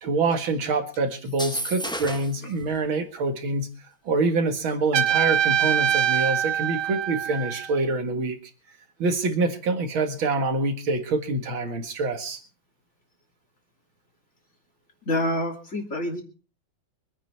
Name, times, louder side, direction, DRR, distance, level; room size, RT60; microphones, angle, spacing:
voice 1, 0.0-3.7 4.1-8.4 9.0-12.4, right 3 dB, 90° right, 7 dB, 2.6 m, -26 dB
sound 1, 1.3-2.4, equal, 5° left, 0.4 m, -32 dB
Trumpet, 4.9-7.8, right 10 dB, 65° right, 1.4 m, -23 dB
voice 2, 15.1-16.2, left 1 dB, 35° left, 3 dB, 3.1 m, -27 dB
24.5 x 9.3 x 4.5 m, 0.36 s
omnidirectional pair, 2.1 m